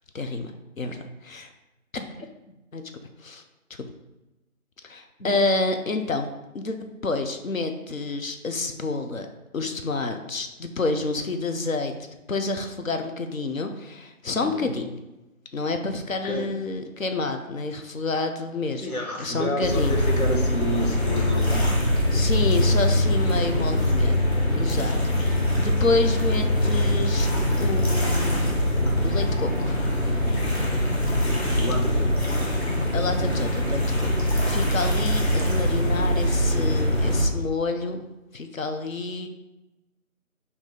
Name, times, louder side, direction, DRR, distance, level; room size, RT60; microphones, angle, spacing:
voice 1, 0.1-0.5 0.8-1.5 1.9-2.3 2.7-2.8 3.2-3.4 4.8-9.3 9.5-11.9 12.3-14.9 15.5-18.9 19.2-20.0 22.1-24.2 24.5-27.3 27.6-28.5 29.0-29.9 32.9-39.3, left 3 dB, 70° left, 6 dB, 0.6 m, -29 dB
voice 2, 14.3-14.8 16.1-16.5 18.8-22.3 23.2-23.8 24.7-25.1 25.8-25.9 31.5-32.2, equal, 85° left, 0 dB, 1.1 m, -31 dB
sound 1, 19.6-37.2, left 1 dB, 50° left, 1.0 m, -23 dB
4.6 x 2.7 x 3.7 m, 1.0 s
figure-of-eight pair, 175°, 42 cm